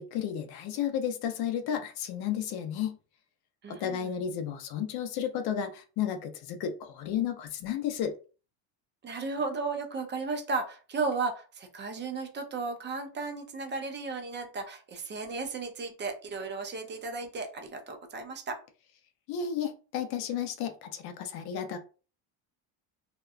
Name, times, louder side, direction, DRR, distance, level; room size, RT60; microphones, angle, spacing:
voice 1, 0.0-3.0 3.7-8.2 19.3-21.8, left 9 dB, 55° left, 0.5 m, -32 dB
voice 2, 3.6-4.1 9.0-18.6, right 4 dB, 25° right, 0.4 m, -34 dB
2.8 x 2.2 x 2.3 m
cardioid pair, 140°, 47 cm